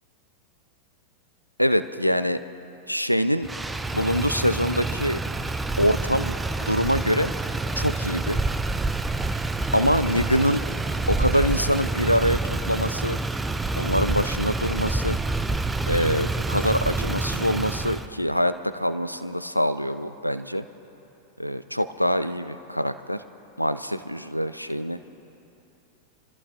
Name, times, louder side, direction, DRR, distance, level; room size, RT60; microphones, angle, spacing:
voice 1, 1.6-2.4 2.9-3.5 3.9-5.2 5.8-6.3 6.6-7.3 7.8-8.4 9.7-10.6 11.1-13.2 13.8-15.2 15.9-20.6 21.4-23.2 23.6-25.0, equal, 90° left, 12 dB, 0.4 m, -24 dB
Motor vehicle (road), 3.4-18.1, right 2 dB, 10° right, 0.5 m, -27 dB
26.0 x 14.0 x 2.5 m, 2.8 s
figure-of-eight pair, 90°, 0 cm